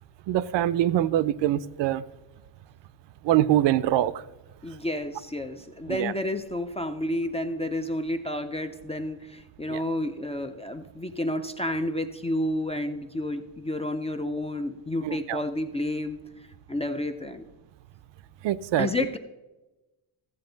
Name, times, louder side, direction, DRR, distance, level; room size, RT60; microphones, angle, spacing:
voice 1, 0.3-2.0 3.2-4.2 5.9-6.1 9.7-9.8 15.0-15.4 18.4-18.9, right 12 dB, 70° right, 0.5 m, -24 dB
voice 2, 4.6-16.2 16.7-17.4 18.8-19.2, left 1 dB, 15° left, 0.3 m, -30 dB
14.0 x 7.8 x 3.9 m
cardioid pair, 155°, 46 cm